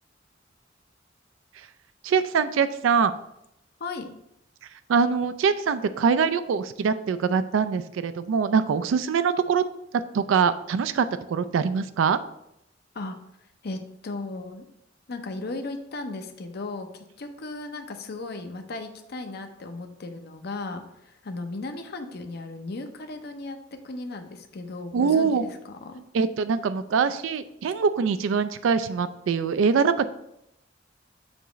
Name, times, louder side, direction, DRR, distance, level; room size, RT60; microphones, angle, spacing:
voice 1, 2.0-3.1 4.9-9.6 10.1-12.2 24.9-25.4 26.1-30.0, right 6 dB, 85° right, 12 dB, 0.3 m, -23 dB
voice 2, 13.6-14.7 15.1-23.6 23.8-26.0, left 2 dB, 55° left, 6 dB, 0.6 m, -36 dB
7.0 x 3.0 x 4.9 m, 0.80 s
head